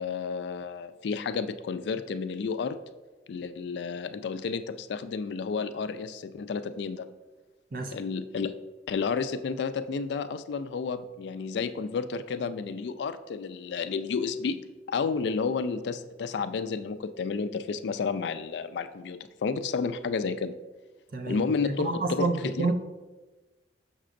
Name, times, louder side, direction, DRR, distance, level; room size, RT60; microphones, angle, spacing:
voice 1, 0.0-2.8 3.3-7.1 7.9-8.6 8.9-20.6 21.3-22.3 22.6-22.7, left 5 dB, 65° left, 12 dB, 0.3 m, -31 dB
voice 2, 21.1-21.4 21.8-22.7, right 3 dB, 55° right, 6 dB, 0.6 m, -29 dB
6.6 x 6.1 x 2.5 m, 1.2 s
head